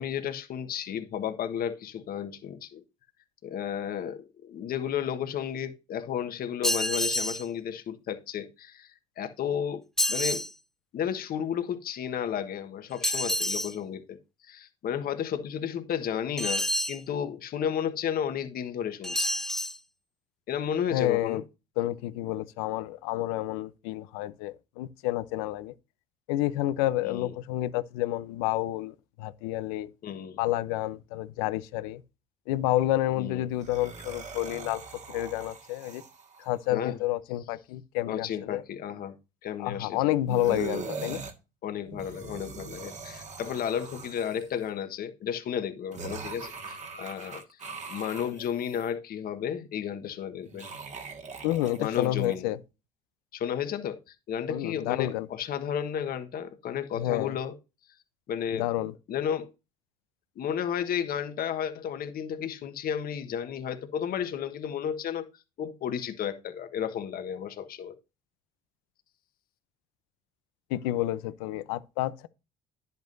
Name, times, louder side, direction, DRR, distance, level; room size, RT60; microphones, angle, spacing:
voice 1, 0.0-2.8 3.4-9.8 10.1-10.4 10.9-14.2 14.4-19.3 20.5-21.4 27.0-27.3 30.0-30.4 33.2-33.4 36.7-37.0 38.1-39.1 39.4-40.1 41.6-47.6 47.9-50.7 51.8-52.5 53.3-57.5 58.3-58.7 59.1-59.5 60.3-65.3 65.6-67.9, left 8 dB, 55° left, 1.4 m, -33 dB
sound 1, 6.6-7.4 10.0-10.5 13.0-13.7 16.4-17.0 19.0-19.8, equal, 5° left, 0.5 m, -28 dB
voice 2, 20.9-21.4 21.8-25.7 26.3-29.9 30.4-32.0 32.5-34.8 35.1-36.0 36.4-38.6 39.6-41.2 51.4-52.6 54.5-55.3 56.9-57.3 58.5-58.9 70.7-72.3, left 15 dB, 80° left, 0.7 m, -29 dB
sound 2, 33.5-36.6 40.3-41.3 41.8-44.6 45.9-48.9 50.4-52.4, right 4 dB, 40° right, 1.8 m, -41 dB
10.5 x 8.1 x 2.7 m
hypercardioid pair, 70°, 18 cm